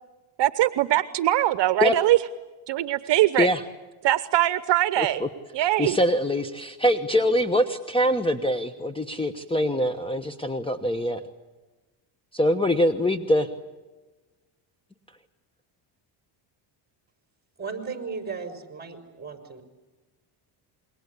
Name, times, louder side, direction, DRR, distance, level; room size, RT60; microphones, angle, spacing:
voice 1, 0.4-2.2 2.7-3.5 4.0-5.2 5.5-6.0, right 14 dB, 55° right, 13 dB, 1.0 m, -22 dB
voice 2, 5.0-5.3 5.6-11.2 12.3-13.5, left 1 dB, 10° left, 9 dB, 1.2 m, -24 dB
voice 3, 17.6-19.6, right 5 dB, 20° right, 6 dB, 5.1 m, -35 dB
27.5 x 22.5 x 8.4 m, 1.2 s
cardioid pair, 105°, 50 cm